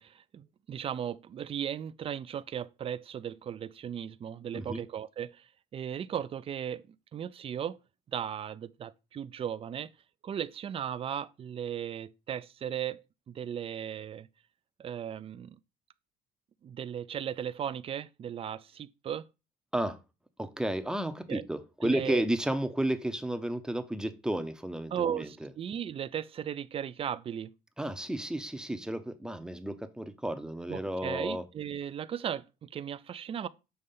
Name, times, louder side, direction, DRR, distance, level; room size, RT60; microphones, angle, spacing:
voice 1, 0.0-7.8 8.1-9.9 10.2-13.0 13.3-14.3 14.8-15.6 16.6-19.2 21.3-21.5 21.8-22.2 24.9-27.5 30.7-33.5, right 9 dB, 35° right, 0.4 m, -36 dB
voice 2, 20.4-25.5 27.8-31.4, right 1 dB, 5° right, 0.7 m, -32 dB
6.8 x 3.2 x 5.4 m
cardioid pair, 110°, 17 cm